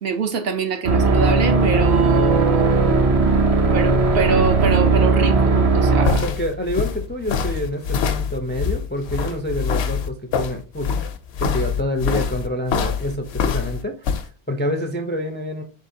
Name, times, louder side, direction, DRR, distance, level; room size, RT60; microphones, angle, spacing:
voice 1, 0.0-3.2 3.7-6.2, right 5 dB, 70° right, 0.9 m, -24 dB
sound 1, 0.8-6.3, right 3 dB, 45° right, 0.5 m, -17 dB
sound 2, 5.6-14.2, left 6 dB, 80° left, 0.9 m, -25 dB
voice 2, 6.2-11.0 11.4-15.6, left 1 dB, 15° left, 0.3 m, -27 dB
4.3 x 3.6 x 2.7 m
omnidirectional pair, 1.1 m